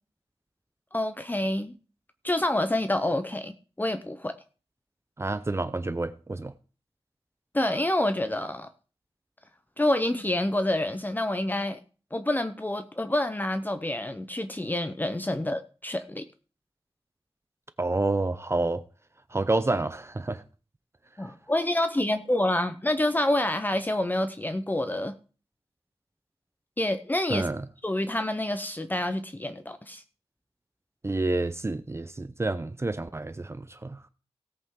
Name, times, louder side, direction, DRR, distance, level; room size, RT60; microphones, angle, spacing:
voice 1, 0.9-1.7 2.2-4.3 7.5-8.7 9.8-11.8 12.1-16.2 21.2-25.1 26.8-27.5 27.8-30.0, left 1 dB, 20° left, 0.8 m, -27 dB
voice 2, 5.2-6.5 17.8-18.8 19.3-20.4 27.3-27.6 31.0-34.0, right 2 dB, 25° right, 0.7 m, -29 dB
17.0 x 8.3 x 3.8 m
wide cardioid pair, 110°, 10 cm